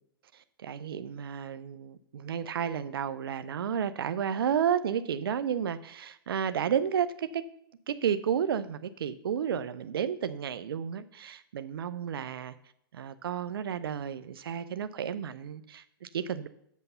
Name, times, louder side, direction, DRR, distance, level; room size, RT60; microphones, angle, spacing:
voice 1, 0.6-7.4 7.9-12.5 12.9-16.5, right 8 dB, 75° right, 12 dB, 0.6 m, -32 dB
8.3 x 6.8 x 5.5 m, 0.74 s
hypercardioid pair, 125°, 12 cm